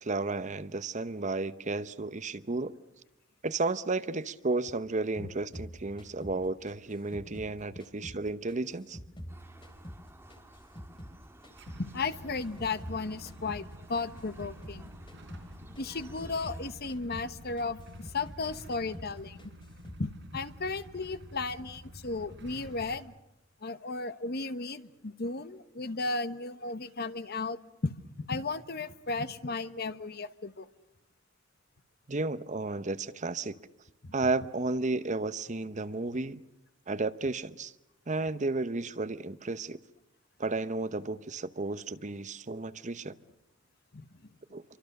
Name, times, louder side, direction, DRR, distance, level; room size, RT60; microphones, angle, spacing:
voice 1, 0.0-2.7 3.4-9.0 32.1-33.6 34.1-36.4 36.9-37.7 38.1-39.8 40.4-43.1 44.5-44.6, right 3 dB, 40° right, 0.9 m, -33 dB
sound 1, 5.5-8.2 8.5-11.2 11.4-14.8 15.1-15.5 15.7-18.5 18.7-19.1 19.4-20.0, equal, 25° left, 3.1 m, -47 dB
sound 2, 9.3-16.7, right 1 dB, 10° right, 1.6 m, -55 dB
Motorcycle / Engine starting / Idling, 11.5-23.0, equal, 65° right, 4.5 m, -49 dB
voice 2, 11.8-14.9 15.8-19.5 20.0-23.1 23.6-27.9 28.2-30.7 34.0-34.1 43.9-44.1, left 3 dB, 55° left, 1.1 m, -35 dB
27.0 x 24.5 x 6.7 m
head